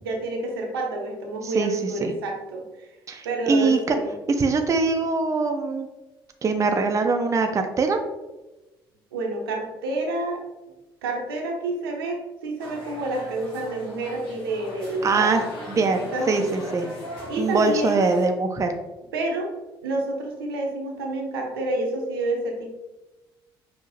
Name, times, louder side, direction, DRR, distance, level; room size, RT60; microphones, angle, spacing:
voice 1, 0.0-2.9 3.2-4.1 9.1-10.4 11.0-15.4 16.1-16.5 17.3-18.0 19.1-19.5 19.8-22.8, right 2 dB, 75° right, 1 dB, 0.7 m, -28 dB
voice 2, 1.4-2.1 3.1-4.0 4.4-5.9 6.4-8.0 15.0-15.4 15.7-16.0 16.3-16.9 17.4-18.7, right 4 dB, 25° right, 5 dB, 0.5 m, -22 dB
sound 1, 12.6-18.3, equal, 75° left, 1.3 m, -38 dB
5.5 x 2.9 x 2.9 m, 1.1 s
figure-of-eight pair, 50°, 12 cm